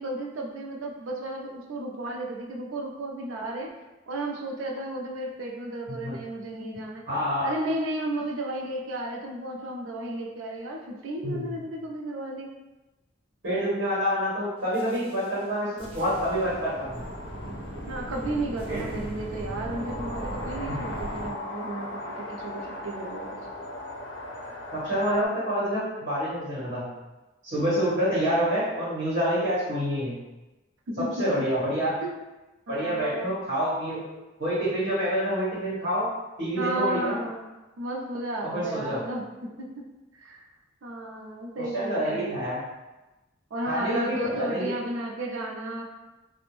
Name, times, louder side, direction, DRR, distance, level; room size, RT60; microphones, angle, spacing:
voice 1, 0.0-3.7 4.1-7.0 7.4-12.5 17.9-23.4 30.9-31.4 32.0-32.1 32.7-33.3 36.6-37.4 37.8-39.8 40.1-40.4 40.8-42.4 43.5-45.8, right 1 dB, 90° right, 1 dB, 0.5 m, -33 dB
voice 2, 5.9-6.2 7.1-7.6 11.2-11.5 13.4-17.0 18.7-19.0 20.7-20.8 24.7-26.9 27.4-30.2 31.0-32.0 32.7-34.0 34.4-36.1 36.4-37.1 38.4-39.0 41.6-42.7 43.7-44.7, equal, 55° right, -11 dB, 1.1 m, -27 dB
sound 1, 14.7-15.3 15.8-21.3, right 1 dB, 30° right, 0.5 m, -38 dB
sound 2, 15.9-25.3, left 1 dB, 65° left, 0.5 m, -39 dB
2.5 x 2.1 x 3.1 m, 1.1 s
head